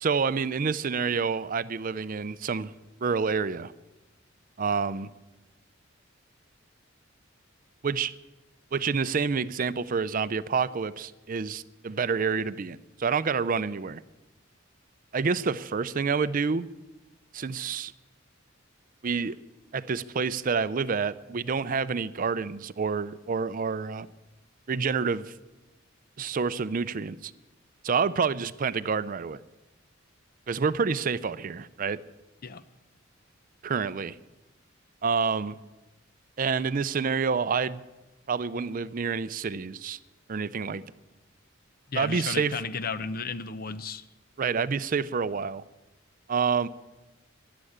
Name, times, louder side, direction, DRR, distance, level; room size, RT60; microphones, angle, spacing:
voice 1, 0.0-2.7 3.0-3.7 4.6-5.1 7.8-8.1 8.7-14.0 15.1-16.7 17.3-17.9 19.0-19.4 19.7-24.1 24.7-25.3 26.2-27.3 27.8-29.4 30.5-32.0 33.6-34.2 35.0-35.6 36.4-37.8 38.3-40.0 40.3-40.8 42.0-42.6 44.4-45.6 46.3-46.7, right 5 dB, 45° right, 15 dB, 0.5 m, -28 dB
voice 2, 41.9-44.0, left 4 dB, 45° left, 13 dB, 0.7 m, -34 dB
14.5 x 11.5 x 8.6 m, 1.1 s
head